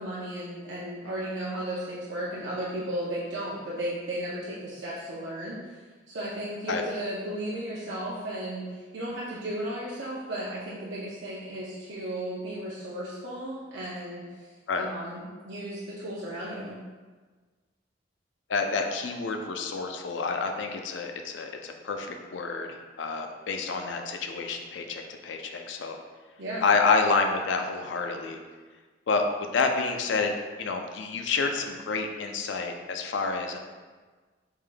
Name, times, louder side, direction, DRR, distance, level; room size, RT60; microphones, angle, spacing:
voice 1, 0.0-5.8 6.1-16.8 26.4-26.7, right 1 dB, 75° right, -7 dB, 0.6 m, -35 dB
voice 2, 18.5-22.7 23.0-26.0 26.6-28.4 29.1-29.2 29.5-33.6, left 4 dB, 75° left, 4 dB, 0.4 m, -28 dB
4.8 x 3.7 x 2.2 m, 1.4 s
head